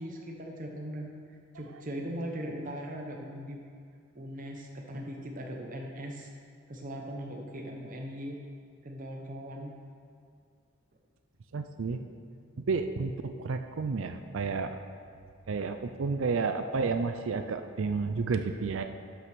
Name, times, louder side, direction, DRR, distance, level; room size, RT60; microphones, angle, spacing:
voice 1, 0.0-3.6 4.1-6.3 6.7-8.4 8.8-9.8, equal, 40° right, 1 dB, 0.9 m, -39 dB
voice 2, 11.5-12.0 12.7-14.7 15.5-18.8, right 4 dB, 65° right, 8 dB, 0.4 m, -31 dB
11.0 x 5.9 x 6.1 m, 2.3 s
head